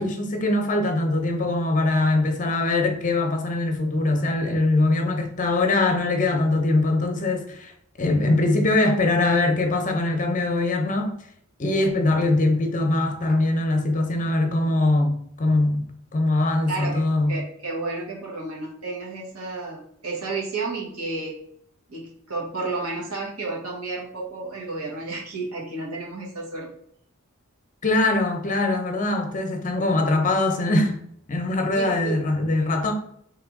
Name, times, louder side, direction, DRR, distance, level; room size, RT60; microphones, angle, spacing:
voice 1, 0.0-7.7 8.0-11.1 11.6-17.3 27.8-31.0 31.3-32.9, left 2 dB, 35° left, 0.6 m, -22 dB
voice 2, 16.7-17.0 17.3-21.4 21.9-26.7 31.7-32.2, right 3 dB, 90° right, 1.1 m, -32 dB
3.2 x 3.0 x 3.6 m
head